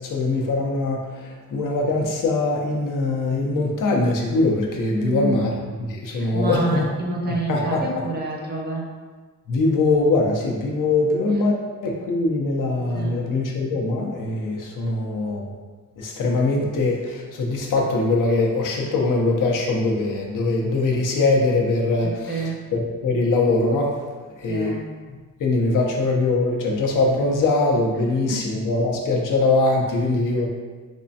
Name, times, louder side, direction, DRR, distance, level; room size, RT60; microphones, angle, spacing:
voice 1, 0.0-5.5 5.9-6.9 7.5-8.0 9.5-15.6 16.0-23.9 24.4-24.7 25.4-30.5, left 2 dB, 75° left, -1 dB, 0.7 m, -22 dB
voice 2, 4.9-5.5 6.0-8.8 12.9-13.2 22.0-22.6 24.5-24.8 28.3-28.6, right 2 dB, 30° right, -1 dB, 0.6 m, -28 dB
3.5 x 3.2 x 2.7 m, 1.4 s
wide cardioid pair, 130°, 32 cm